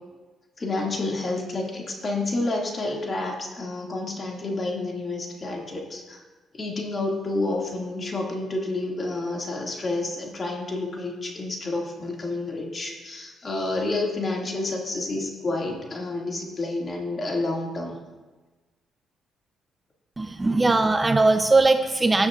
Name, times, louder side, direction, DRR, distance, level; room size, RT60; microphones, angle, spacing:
voice 1, 0.6-6.2 6.5-18.0, left 2 dB, 35° left, -1 dB, 2.0 m, -29 dB
voice 2, 20.2-22.3, right 3 dB, 20° right, 7 dB, 0.5 m, -20 dB
16.5 x 6.6 x 2.4 m, 1.3 s
cardioid pair, 90°, 0 cm